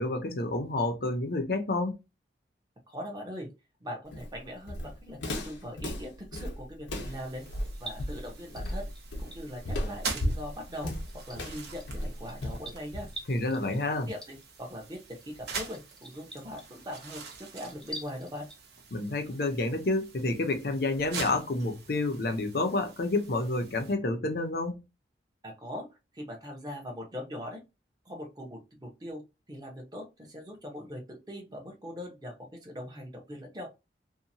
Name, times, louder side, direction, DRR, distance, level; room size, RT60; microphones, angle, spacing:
voice 1, 0.0-2.0 13.3-14.1 18.9-24.8, left 2 dB, 55° left, 0.6 m, -29 dB
voice 2, 2.9-3.5 3.8-7.4 7.8-8.9 9.2-13.1 13.6-18.5 25.4-25.9 26.1-27.6 28.0-29.2 29.5-33.7, equal, 20° right, 0.8 m, -41 dB
Walk footsteps, 4.1-13.4, left 1 dB, 90° left, 0.7 m, -35 dB
sound 1, 7.0-18.6, equal, 5° left, 0.5 m, -49 dB
sound 2, 7.0-23.9, right 4 dB, 65° right, 0.7 m, -44 dB
2.7 x 2.2 x 2.7 m
head